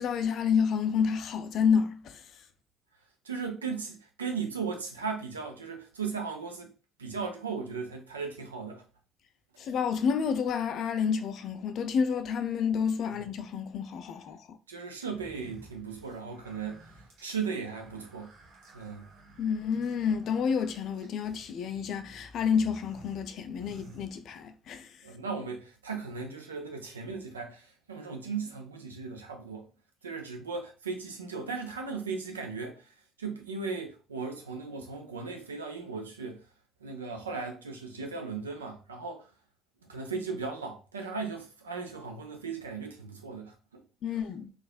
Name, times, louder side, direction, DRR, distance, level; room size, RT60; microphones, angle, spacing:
voice 1, 0.0-2.2 9.6-14.6 19.4-24.9 44.0-44.5, left 6 dB, 50° left, 0.4 m, -29 dB
voice 2, 3.2-6.7 7.0-8.8 13.0-13.2 14.7-16.9 17.2-18.3 18.7-19.1 25.0-29.7 30.0-36.4 36.8-39.3 39.9-43.8, right 5 dB, 80° right, 0.5 m, -37 dB
sound 1, 15.0-24.7, right 2 dB, 60° right, 1.0 m, -54 dB
4.0 x 2.5 x 2.4 m
figure-of-eight pair, 50°, 0 cm